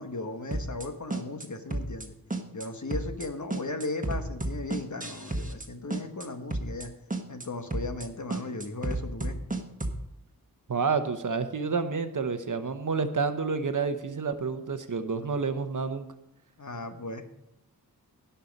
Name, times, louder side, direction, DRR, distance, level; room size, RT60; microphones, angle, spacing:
voice 1, 0.0-2.1 2.5-6.9 7.3-9.4 16.6-17.2, left 2 dB, 50° left, 6 dB, 1.4 m, -36 dB
sound 1, 0.5-1.5 1.7-2.1 2.3-2.7 2.9-3.3 3.5-5.7 5.9-6.3 6.5-6.9 7.1-7.5 7.7-8.1 8.3-10.0, right 2 dB, 20° right, 1.4 m, -32 dB
voice 2, 10.7-16.1, right 5 dB, 55° right, 9 dB, 1.0 m, -29 dB
17.0 x 5.8 x 5.3 m, 0.84 s
wide cardioid pair, 75°, 37 cm